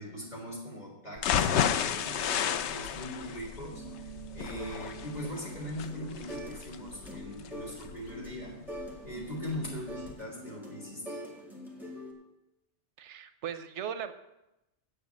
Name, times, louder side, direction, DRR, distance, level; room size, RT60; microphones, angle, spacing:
voice 1, 0.0-8.6 9.0-11.0, equal, 40° left, -3 dB, 3.6 m, -41 dB
sound 1, 1.2-9.1 9.5-9.6 10.0-10.1, left 8 dB, 80° left, 0.9 m, -32 dB
sound 2, 3.7-6.6 6.9-12.1, right 1 dB, ahead, 1.9 m, -44 dB
voice 2, 13.0-14.1, right 8 dB, 90° right, 11 dB, 1.0 m, -38 dB
7.7 x 7.4 x 8.2 m, 0.93 s
omnidirectional pair, 1.2 m